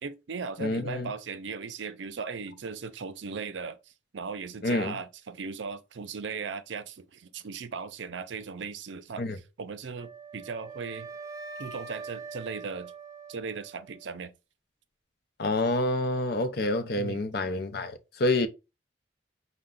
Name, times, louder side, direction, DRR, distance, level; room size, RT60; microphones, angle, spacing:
voice 1, 0.0-3.8 4.1-11.1 11.6-12.9 13.3-14.3 17.0-17.2, right 5 dB, 70° right, 0.5 m, -38 dB
voice 2, 0.6-1.1 4.6-5.0 9.2-9.4 15.4-18.5, left 2 dB, 55° left, 0.6 m, -28 dB
Wind instrument woodwind instrument, 10.0-14.1, right 5 dB, 20° right, 0.6 m, -43 dB
5.5 x 2.2 x 3.7 m
head